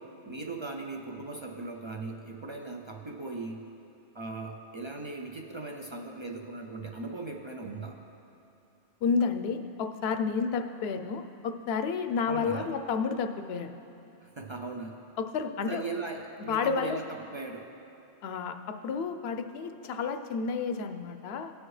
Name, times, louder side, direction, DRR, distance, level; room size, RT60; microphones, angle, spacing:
voice 1, 0.0-3.7 4.1-8.0 12.2-12.8 14.2-15.0 15.7-17.7, right 3 dB, 45° right, 2 dB, 0.3 m, -39 dB
voice 2, 9.0-13.7 15.2-15.8 16.5-17.0 18.2-21.5, left 5 dB, 70° left, 7 dB, 0.8 m, -31 dB
17.5 x 6.4 x 3.2 m, 2.9 s
omnidirectional pair, 1.1 m